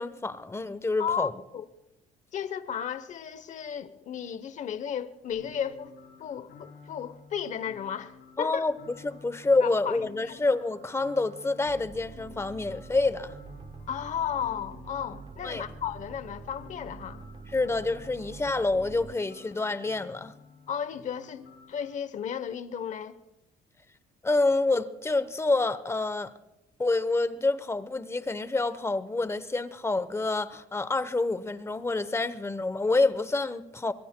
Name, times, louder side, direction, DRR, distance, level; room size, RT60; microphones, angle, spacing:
voice 1, 0.0-1.3 8.4-8.7 9.0-13.3 15.4-15.6 17.5-20.3 24.2-26.3 26.8-33.9, left 3 dB, 15° left, 0.8 m, -27 dB
voice 2, 1.0-1.6 2.3-5.9 6.2-8.6 9.6-10.0 10.2-10.4 13.9-17.2 20.7-23.2, left 8 dB, 45° left, 0.9 m, -34 dB
sound 1, 5.3-21.8, left 5 dB, 65° left, 5.7 m, -52 dB
sound 2, 11.7-19.2, right 5 dB, 30° right, 0.9 m, -46 dB
25.0 x 22.5 x 2.2 m
cardioid pair, 110°, 17 cm